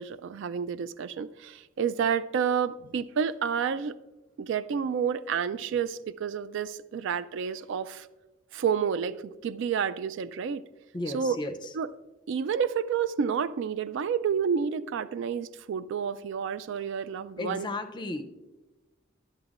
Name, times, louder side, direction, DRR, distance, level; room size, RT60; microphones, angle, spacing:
voice 1, 0.0-3.9 4.4-8.1 8.5-10.6 11.1-11.4 11.7-11.9 12.3-17.7, right 7 dB, 60° right, 15 dB, 0.3 m, -29 dB
voice 2, 10.9-11.5 17.4-18.2, left 2 dB, 20° left, 8 dB, 0.5 m, -34 dB
11.0 x 9.7 x 2.4 m, 1.1 s
head